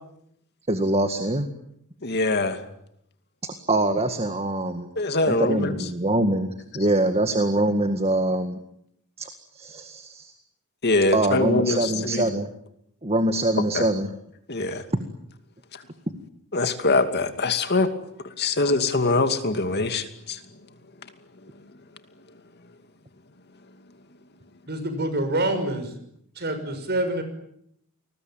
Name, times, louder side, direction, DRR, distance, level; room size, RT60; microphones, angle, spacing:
voice 1, 0.7-1.5 3.4-4.9 5.3-6.5 6.7-8.6 9.2-10.3 11.1-12.5 13.0-14.1, right 1 dB, 30° right, 8 dB, 1.9 m, -24 dB
voice 2, 2.0-2.6 5.0-5.7 10.8-12.2 13.7-13.9 14.5-14.8 16.5-17.9 18.4-20.4, left 2 dB, 50° left, 8 dB, 2.5 m, -23 dB
voice 3, 24.7-25.9 26.3-27.2, right 1 dB, 45° right, 9 dB, 6.2 m, -26 dB
29.0 x 21.0 x 9.2 m, 0.75 s
head